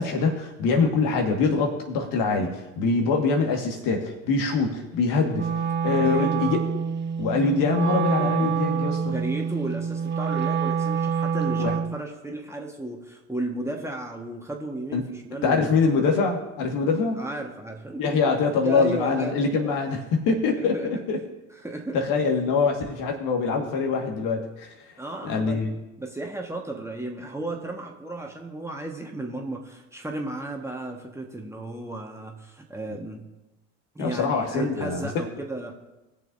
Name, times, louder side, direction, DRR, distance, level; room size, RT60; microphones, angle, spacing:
voice 1, 0.0-5.5 5.8-6.6 7.2-9.1 11.6-11.8 14.9-15.0 15.4-17.2 18.0-21.2 21.9-24.7 25.2-25.7 34.0-35.1, left 4 dB, 60° left, 2 dB, 1.8 m, -24 dB
Wind instrument woodwind instrument, 5.3-12.0, right 6 dB, 30° right, 0.7 m, -26 dB
voice 2, 5.9-6.5 8.2-8.5 9.0-15.7 17.2-18.2 18.6-19.8 20.6-21.0 21.6-22.1 25.0-25.6 26.0-33.2 33.9-35.7, right 2 dB, 5° right, 1 dB, 1.5 m, -34 dB
20.0 x 6.9 x 2.7 m, 1.0 s
hypercardioid pair, 70°, 38 cm